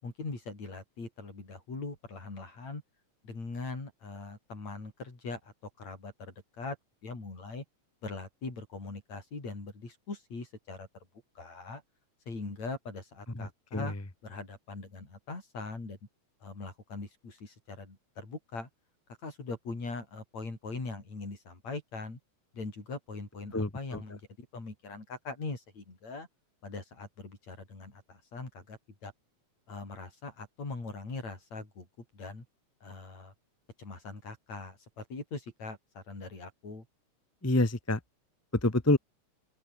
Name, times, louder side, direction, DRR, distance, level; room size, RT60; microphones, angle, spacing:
voice 1, 0.0-2.8 3.2-6.8 7.0-7.6 8.0-10.9 11.4-11.8 12.3-13.9 14.2-16.0 16.4-18.7 19.2-22.2 22.5-26.3 26.6-29.1 29.7-31.9 32.1-32.5 32.8-33.3 33.8-36.9, left 3 dB, 60° left, 8.3 m, -41 dB
voice 2, 13.3-14.0 23.5-24.0 37.4-38.0 38.6-39.0, left 2 dB, 10° left, 0.9 m, -28 dB
open air
omnidirectional pair, 3.4 m